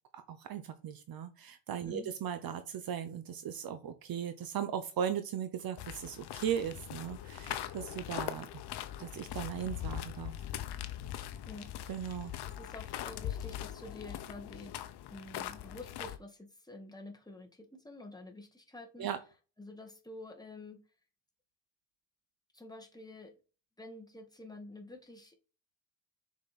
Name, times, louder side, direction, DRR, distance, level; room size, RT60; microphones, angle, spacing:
voice 1, 0.1-8.5 9.0-10.3 11.9-12.3 19.0-19.2, right 9 dB, 50° right, 10 dB, 0.9 m, -37 dB
sound 1, 5.8-16.2, left 12 dB, 60° left, 1.0 m, -41 dB
voice 2, 12.2-14.8 15.1-19.1 19.6-20.8 22.5-23.3 23.8-25.4, left 2 dB, 10° left, 2 dB, 1.8 m, -49 dB
6.6 x 5.3 x 4.2 m, 0.37 s
supercardioid pair, 80°, 46 cm